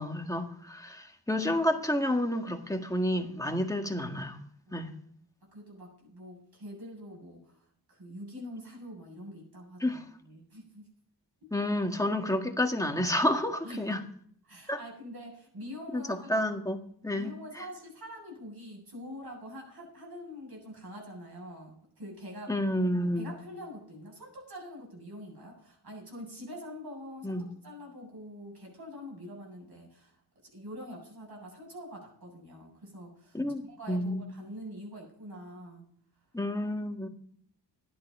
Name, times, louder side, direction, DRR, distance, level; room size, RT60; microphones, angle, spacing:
voice 1, 0.0-4.4 4.7-4.9 9.8-10.0 11.5-14.0 14.7-14.8 15.9-16.8 17.0-17.6 22.5-23.3 27.2-27.5 33.3-34.2 36.3-37.1, left 1 dB, 10° left, 1.7 m, -30 dB
voice 2, 5.5-7.6 7.9-10.9 13.6-14.0 14.5-16.5 17.1-22.6 23.2-30.2 30.5-35.9, equal, 65° right, 7.4 m, -45 dB
13.0 x 11.0 x 5.3 m
wide cardioid pair, 95°, 41 cm